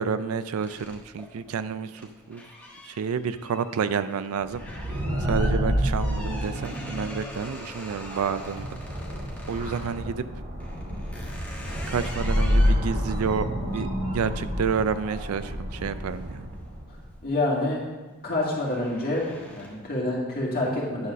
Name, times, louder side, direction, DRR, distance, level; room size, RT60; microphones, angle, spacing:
voice 1, 0.0-2.4 2.9-4.6 5.2-8.7 9.5-10.2 11.9-13.5 13.7-13.9 14.1-16.4, right 6 dB, 75° right, 13 dB, 0.4 m, -29 dB
sound 1, 0.6-10.0 10.6-17.0 17.4-17.8 18.1-20.0, equal, 5° left, 1.2 m, -44 dB
sound 2, 4.5-17.0, equal, 35° right, 2.0 m, -28 dB
voice 2, 17.2-17.8 18.2-21.1, left 2 dB, 40° left, -4 dB, 2.1 m, -27 dB
9.5 x 4.1 x 6.2 m, 1.2 s
head